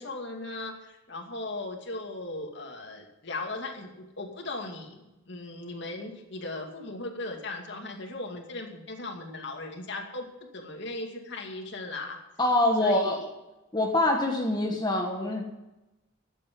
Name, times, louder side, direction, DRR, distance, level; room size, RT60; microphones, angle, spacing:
voice 1, 0.0-10.3 10.5-12.2 12.8-13.3, left 2 dB, 60° left, 1 dB, 2.4 m, -38 dB
voice 2, 12.4-13.2 13.7-15.4, left 1 dB, 20° left, 1 dB, 1.4 m, -24 dB
12.5 x 8.5 x 7.6 m, 0.98 s
head